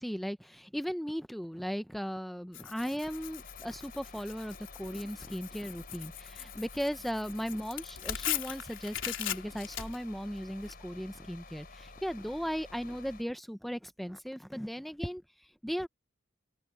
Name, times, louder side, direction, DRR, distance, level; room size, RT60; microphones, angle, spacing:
voice 1, 0.0-15.2 15.6-15.9, equal, ahead, 0.6 m, -37 dB
Tearing, 2.5-10.7, left 11 dB, 90° left, 3.4 m, -40 dB
sound 1, 3.0-13.2, left 3 dB, 50° left, 4.3 m, -51 dB
open air
head